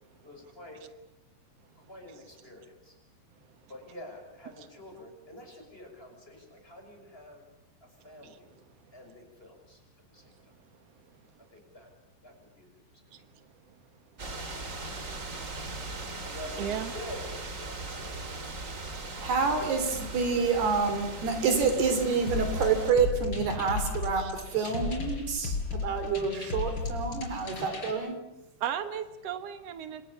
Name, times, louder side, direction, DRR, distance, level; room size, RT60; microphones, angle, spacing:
voice 1, 0.2-0.9 1.9-3.0 3.7-7.4 7.8-8.5 8.9-9.8 10.1-10.4 11.5-11.9 12.2-12.7 16.2-18.4, left 1 dB, 15° left, 2 dB, 6.3 m, -47 dB
voice 2, 8.2-8.7 10.4-10.5 13.1-13.4 15.0-15.1 16.6-16.9 18.6-19.0 24.2-24.3 24.6-24.7 27.3-27.7 28.6-30.0, right 9 dB, 85° right, 10 dB, 1.4 m, -38 dB
sound 1, 14.2-22.9, right 2 dB, 25° right, 1.8 m, -39 dB
voice 3, 19.2-28.2, right 5 dB, 70° right, 8 dB, 5.3 m, -28 dB
sound 2, 22.3-27.9, left 3 dB, 30° left, 5.3 m, -34 dB
30.0 x 26.5 x 7.3 m, 0.92 s
omnidirectional pair, 4.9 m